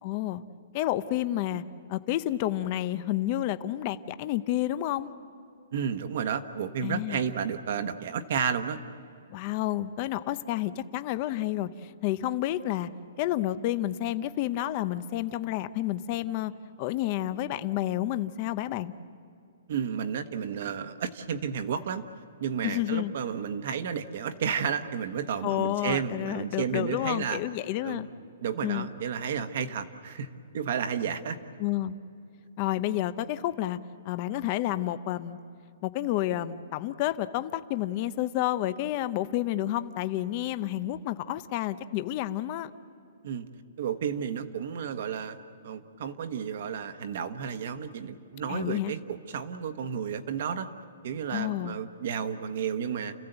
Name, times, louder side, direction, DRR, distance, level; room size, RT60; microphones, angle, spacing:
voice 1, 0.0-0.4 0.7-1.6 1.9-5.1 6.8-7.2 9.3-12.9 13.2-16.5 16.8-18.9 22.6-23.1 25.4-28.1 28.6-28.9 31.6-32.0 32.6-33.8 34.0-35.4 35.8-42.7 48.5-48.9 51.3-51.8, left 14 dB, 25° left, 13 dB, 0.6 m, -30 dB
voice 2, 5.7-8.8 19.7-22.0 22.4-27.4 27.8-28.1 28.4-30.3 30.5-31.4 43.2-43.5 43.8-45.4 45.6-50.7 51.0-53.1, right 7 dB, 45° right, 9 dB, 1.2 m, -32 dB
30.0 x 15.5 x 8.0 m, 2.5 s
hypercardioid pair, 180°, 0 cm